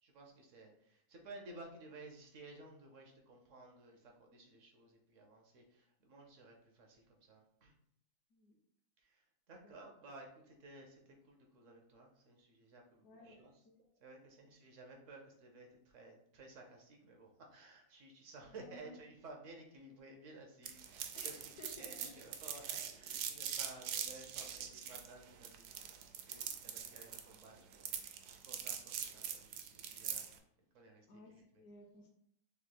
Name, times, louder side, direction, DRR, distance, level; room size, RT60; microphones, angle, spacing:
voice 1, 0.0-7.8 9.0-30.3 30.7-31.1, right 2 dB, 60° right, 2 dB, 1.1 m, -56 dB
voice 2, 9.6-10.0 13.0-13.8 18.4-19.0 21.1-22.1 31.1-32.1, left 3 dB, 75° left, -3 dB, 1.2 m, -57 dB
sound 1, 20.7-30.4, right 8 dB, 90° right, 1.1 m, -43 dB
6.5 x 3.2 x 2.2 m, 0.71 s
omnidirectional pair, 1.6 m